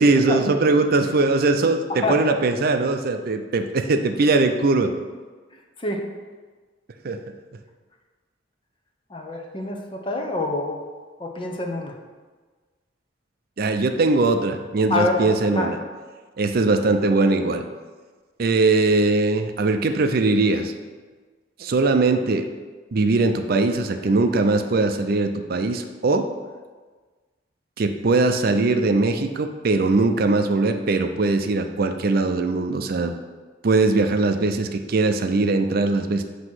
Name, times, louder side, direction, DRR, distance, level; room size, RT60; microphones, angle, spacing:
voice 1, 0.0-4.9 7.0-7.2 13.6-15.8 16.4-17.7 18.4-20.7 21.6-22.5 22.9-26.3 27.8-33.1 33.6-36.2, right 3 dB, 55° right, 6 dB, 0.5 m, -20 dB
voice 2, 9.1-10.8 11.2-11.9 14.9-15.7, left 2 dB, 30° left, 2 dB, 0.8 m, -26 dB
7.7 x 2.9 x 6.1 m, 1.4 s
head